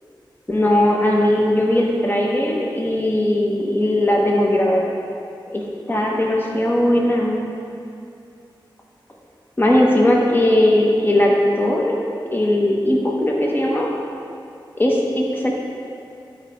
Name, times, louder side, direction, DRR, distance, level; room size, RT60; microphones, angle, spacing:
voice 1, 0.5-4.8 5.5-5.6 5.9-7.4 9.6-12.0 12.3-13.9 14.8-15.6, left 1 dB, 25° left, -2 dB, 1.1 m, -18 dB
11.5 x 5.2 x 4.4 m, 2.5 s
wide cardioid pair, 90°, 9 cm